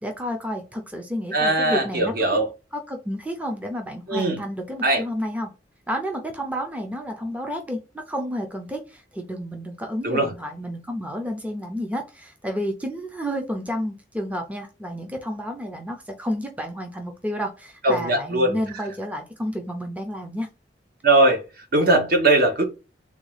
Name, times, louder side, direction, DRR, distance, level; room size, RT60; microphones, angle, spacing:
voice 1, 0.0-2.1 2.7-5.5 5.9-20.5, equal, 10° right, 0.5 m, -31 dB
voice 2, 1.3-2.5 4.1-4.4 4.8-5.0 10.0-10.3 17.8-18.5 21.0-21.4 21.7-22.7, right 2 dB, 55° right, 0.9 m, -20 dB
3.6 x 2.3 x 3.2 m
head